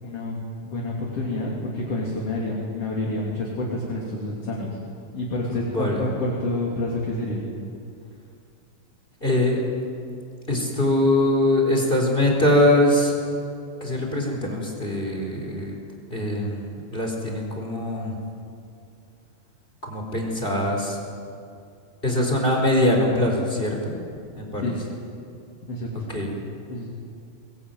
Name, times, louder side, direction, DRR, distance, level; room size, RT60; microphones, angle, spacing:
voice 1, 0.0-0.4 0.7-4.8 5.1-7.4 24.6-24.8 25.7-26.1 26.7-26.9, left 2 dB, 40° left, -3 dB, 3.9 m, -28 dB
voice 2, 5.7-6.1 9.2-9.6 10.5-13.1 13.8-15.8 16.1-18.2 19.9-21.0 22.0-23.9 24.3-24.7 26.1-26.3, left 1 dB, 15° left, 1 dB, 4.1 m, -22 dB
23.0 x 21.5 x 9.3 m, 2.5 s
omnidirectional pair, 4.4 m